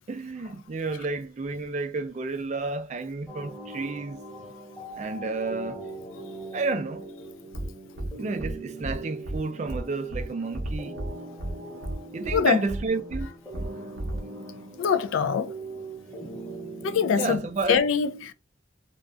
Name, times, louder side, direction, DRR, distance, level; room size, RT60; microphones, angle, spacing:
voice 1, 0.1-4.2 5.0-5.8 6.5-7.1 8.2-11.0 12.1-13.3 17.1-17.8, right 3 dB, 35° right, 0.3 m, -31 dB
sound 1, 3.3-17.5, right 2 dB, 5° left, 0.9 m, -41 dB
sound 2, 7.5-7.7 8.0-8.1 8.4-8.5 8.8-9.0 9.2-9.4 9.7-9.8 10.1-10.2 10.5-11.1 11.4-11.5 11.8-11.9 12.2-12.4 12.7-12.8 13.1-13.2 13.5-13.7 14.0-14.2, right 1 dB, 65° right, 0.6 m, -32 dB
voice 2, 14.8-15.5 16.8-18.3, left 6 dB, 80° left, 0.3 m, -24 dB
2.4 x 2.1 x 2.4 m
head